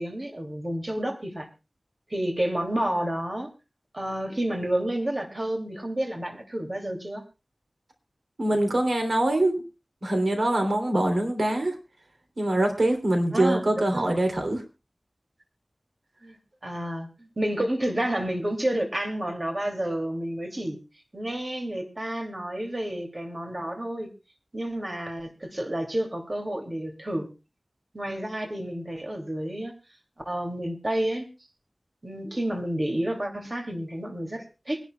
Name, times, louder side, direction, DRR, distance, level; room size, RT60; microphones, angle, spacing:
voice 1, 0.0-1.5 2.1-3.5 3.9-7.2 13.3-14.1 16.2-16.4 16.6-20.8 21.1-24.1 24.5-27.3 27.9-29.7 30.2-31.3 32.0-34.8, right 1 dB, 40° right, 2.7 m, -30 dB
voice 2, 8.4-9.6 10.0-11.7 12.4-14.6, right 1 dB, 75° right, 3.3 m, -24 dB
24.0 x 11.5 x 2.3 m
wide cardioid pair, 65°, 0 cm